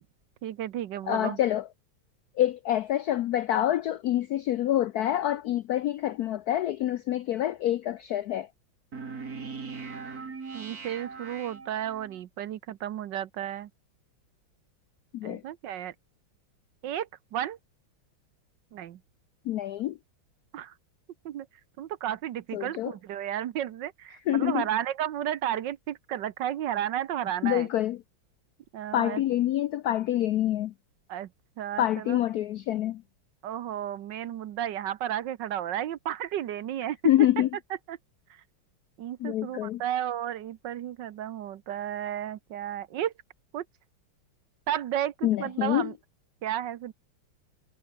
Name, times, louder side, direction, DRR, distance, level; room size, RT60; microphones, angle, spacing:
voice 1, 0.4-1.4 10.5-13.7 15.2-15.9 16.8-17.6 18.7-19.0 20.5-20.7 21.2-21.5 21.8-27.7 28.7-29.2 31.1-31.3 31.6-32.2 33.4-37.0 37.9-38.0 39.0-43.1 43.5-43.6 44.7-45.9 46.4-46.9, right 11 dB, 65° right, 1.4 m, -33 dB
voice 2, 1.1-1.7 2.4-8.5 15.1-15.4 19.5-20.0 22.5-22.9 24.3-24.6 27.4-28.0 28.9-30.7 31.8-33.0 37.0-37.5 39.2-39.8 45.2-45.9, left 12 dB, 75° left, 0.8 m, -26 dB
sound 1, 8.9-12.2, right 4 dB, 45° right, 3.0 m, -40 dB
omnidirectional pair, 2.2 m